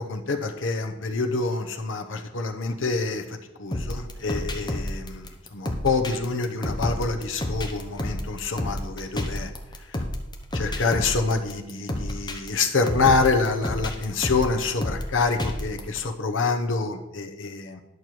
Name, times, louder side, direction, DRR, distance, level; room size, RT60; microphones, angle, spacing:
voice 1, 0.0-9.5 9.9-10.0 10.5-17.8, left 4 dB, 70° left, 5 dB, 0.9 m, -26 dB
sound 1, 3.7-16.0, left 1 dB, 20° left, 0.9 m, -31 dB
11.0 x 6.6 x 4.6 m, 1.0 s
head